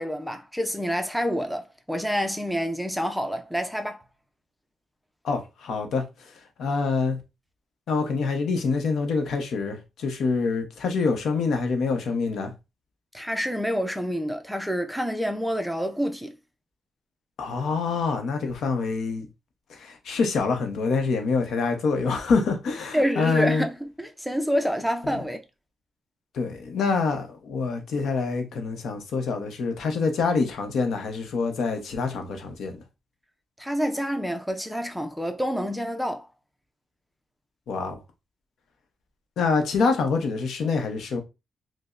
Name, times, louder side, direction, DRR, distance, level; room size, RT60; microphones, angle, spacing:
voice 1, 0.0-4.0 13.1-16.3 22.9-25.4 33.6-36.3, equal, ahead, 0.4 m, -27 dB
voice 2, 5.2-6.0 6.6-7.2 7.9-12.5 17.4-19.3 19.7-23.7 25.0-25.2 26.3-32.8 37.7-38.0 39.4-41.2, left 4 dB, 75° left, 0.7 m, -26 dB
5.1 x 2.0 x 2.4 m
cardioid pair, 140°, 0 cm